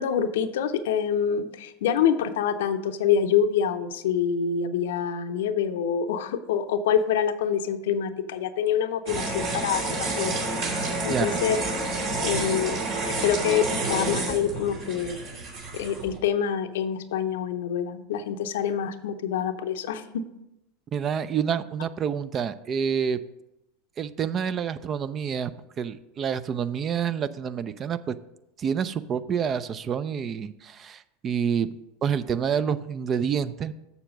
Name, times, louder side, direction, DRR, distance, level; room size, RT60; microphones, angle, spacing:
voice 1, 0.0-10.4 11.0-11.6 12.2-12.8 13.2-15.2 15.7-20.2, left 8 dB, 70° left, 10 dB, 0.6 m, -26 dB
sound 1, 9.1-16.2, right 2 dB, 55° right, 2.6 m, -29 dB
voice 2, 11.1-11.4 20.9-23.2 24.0-25.5 25.8-28.1 28.6-33.7, right 7 dB, 35° right, 14 dB, 0.5 m, -28 dB
7.1 x 6.7 x 5.1 m, 0.89 s
hypercardioid pair, 85°, 0 cm